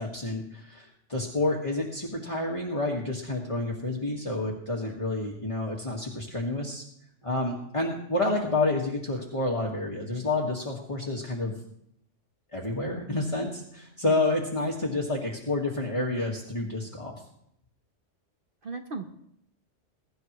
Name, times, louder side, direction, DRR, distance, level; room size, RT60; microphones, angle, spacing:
voice 1, 0.0-6.8 7.2-11.5 12.5-17.2, left 2 dB, 25° left, -2 dB, 1.8 m, -29 dB
voice 2, 14.0-14.5 18.6-19.1, right 4 dB, 50° right, 5 dB, 1.1 m, -38 dB
22.5 x 12.0 x 3.1 m, 0.73 s
omnidirectional pair, 1.3 m